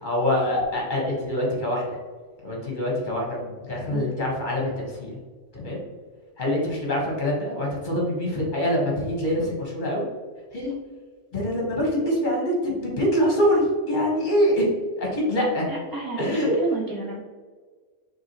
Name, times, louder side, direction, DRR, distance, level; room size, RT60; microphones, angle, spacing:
voice 1, 0.0-2.0 2.4-5.2 5.5-5.8 6.4-10.0 10.5-10.7 11.3-14.6 15.0-15.6 16.2-16.5, equal, 40° left, -3 dB, 1.4 m, -24 dB
voice 2, 15.7-17.2, right 4 dB, 15° right, -5 dB, 1.3 m, -31 dB
5.9 x 3.0 x 2.9 m, 1.5 s
omnidirectional pair, 1.3 m